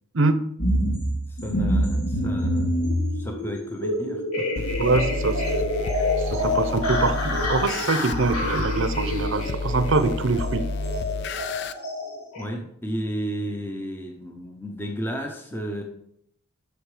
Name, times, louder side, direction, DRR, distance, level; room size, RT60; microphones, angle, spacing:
sound 1, 0.6-12.4, left 1 dB, 80° left, 2.3 m, -27 dB
voice 1, 1.3-2.9 3.2-4.6 12.4-15.8, equal, 10° left, 2 dB, 0.8 m, -33 dB
sound 2, 4.6-11.7, left 3 dB, 50° left, 0.5 m, -30 dB
voice 2, 4.8-5.4 6.2-10.7, right 3 dB, 60° right, 11 dB, 0.7 m, -24 dB
8.2 x 6.4 x 4.9 m, 0.73 s
head